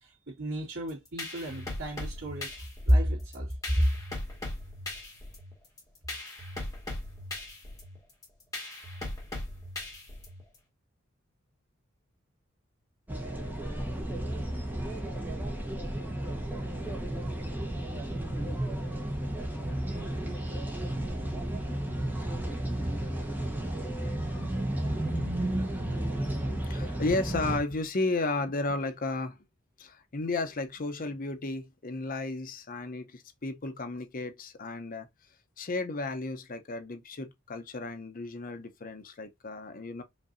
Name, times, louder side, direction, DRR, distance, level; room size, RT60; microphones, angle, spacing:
voice 1, 0.0-2.5 2.9-3.9, equal, 80° right, 2.3 m, -29 dB
sound 1, 0.9-10.6, left 2 dB, 15° left, 1.8 m, -39 dB
sound 2, 13.1-27.6, right 1 dB, 10° right, 1.0 m, -33 dB
voice 2, 26.5-29.4 29.8-35.1 35.6-40.0, left 2 dB, 45° left, 0.7 m, -33 dB
5.2 x 2.7 x 2.6 m
head